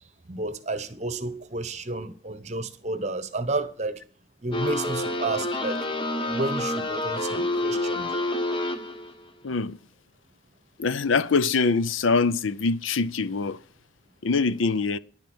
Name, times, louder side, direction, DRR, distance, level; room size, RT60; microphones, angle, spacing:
voice 1, 0.3-4.0 4.4-5.9 6.2-8.1, right 2 dB, 35° right, 1.0 m, -31 dB
sound 1, 4.5-9.1, left 1 dB, 25° left, 1.2 m, -28 dB
voice 2, 9.4-9.8 10.8-13.6 14.2-15.0, left 4 dB, 90° left, 0.6 m, -24 dB
10.5 x 10.5 x 6.3 m
head